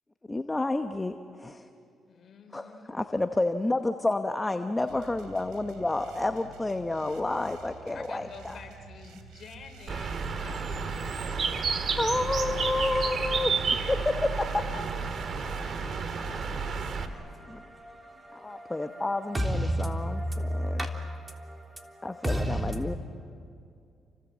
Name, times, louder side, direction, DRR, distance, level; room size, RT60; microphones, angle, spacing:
voice 1, 0.3-1.7 2.5-8.6 12.0-13.6 13.9-14.6 17.5-17.6 18.3-20.8 22.0-22.9, left 2 dB, 15° left, 1.0 m, -30 dB
voice 2, 2.1-2.9 7.9-11.0 11.5-12.5 17.9-18.1 18.8-19.0, left 5 dB, 55° left, 3.9 m, -50 dB
sound 1, 4.9-17.0, right 6 dB, 90° right, 3.3 m, -50 dB
Bird, 9.9-17.1, right 5 dB, 50° right, 2.0 m, -31 dB
voice 3, 15.3-23.0, equal, 15° right, 3.4 m, -34 dB
29.0 x 26.0 x 7.4 m
cardioid pair, 90°, 0 cm